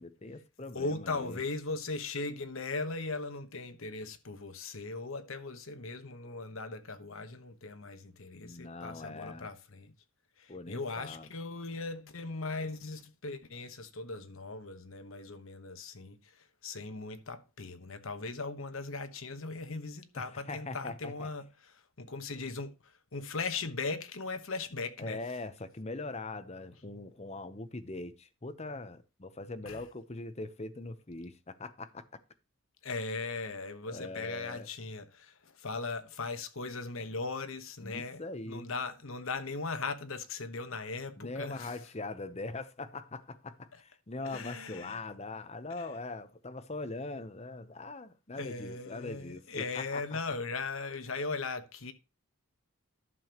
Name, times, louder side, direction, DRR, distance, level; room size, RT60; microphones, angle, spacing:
voice 1, 0.0-1.4 8.4-9.5 10.5-11.3 20.2-21.3 25.0-32.0 33.9-34.7 37.8-38.7 41.2-50.2, left 2 dB, 30° left, 0.8 m, -42 dB
voice 2, 0.7-9.9 10.4-25.2 29.6-29.8 32.8-41.8 44.2-45.0 45.8-45.9 48.4-51.9, left 3 dB, 65° left, 1.1 m, -39 dB
11.0 x 6.9 x 3.0 m
head